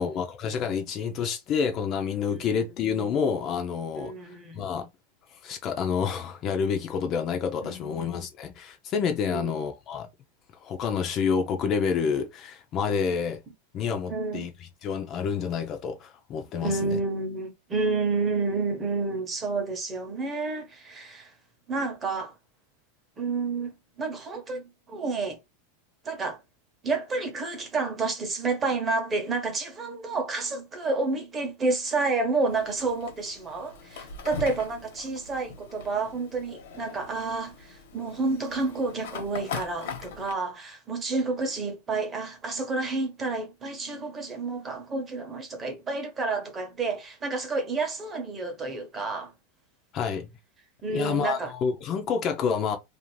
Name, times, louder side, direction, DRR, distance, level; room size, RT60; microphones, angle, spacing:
voice 1, 0.0-4.9 5.3-10.1 10.5-13.4 13.7-17.0 49.9-50.3 50.9-52.8, left 6 dB, 30° left, 0.5 m, -28 dB
voice 2, 4.0-4.6 7.6-8.2 9.3-9.5 14.1-14.4 16.6-21.3 21.7-22.3 23.2-25.4 26.0-26.4 26.8-49.3 50.8-51.5, right 3 dB, 20° right, 0.8 m, -30 dB
Fire, 32.5-40.3, left 5 dB, 70° left, 0.9 m, -41 dB
2.5 x 2.4 x 3.1 m
supercardioid pair, 150°, 0 cm